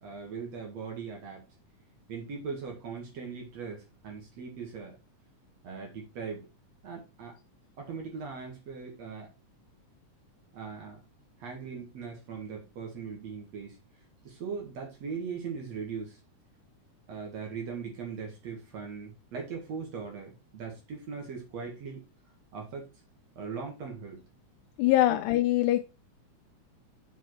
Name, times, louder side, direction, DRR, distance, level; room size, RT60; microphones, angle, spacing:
voice 1, 0.0-1.4 2.1-5.0 5.6-6.5 6.8-7.4 7.8-9.3 10.5-11.0 11.4-13.8 14.2-16.2 17.1-22.0 22.5-22.9 23.4-24.2 25.1-25.2, right 5 dB, 60° right, 0 dB, 2.9 m, -39 dB
voice 2, 24.8-25.8, left 14 dB, 80° left, 8 dB, 2.0 m, -23 dB
7.2 x 4.7 x 4.7 m, 0.28 s
omnidirectional pair, 3.6 m